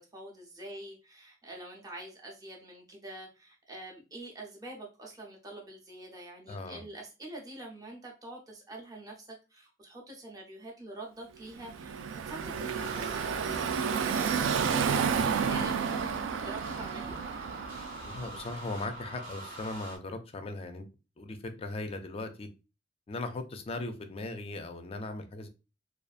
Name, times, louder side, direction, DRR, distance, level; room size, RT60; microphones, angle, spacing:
voice 1, 0.0-17.2, right 1 dB, 20° right, 0.6 m, -46 dB
voice 2, 6.5-6.8 18.0-20.9 21.2-22.5 23.1-25.5, left 2 dB, 30° left, 0.4 m, -38 dB
Car passing by / Traffic noise roadway noise, 11.6-18.5, right 6 dB, 85° right, 0.3 m, -31 dB
sound 1, 12.7-20.0, right 1 dB, 50° right, 0.9 m, -44 dB
2.6 x 2.3 x 2.3 m
head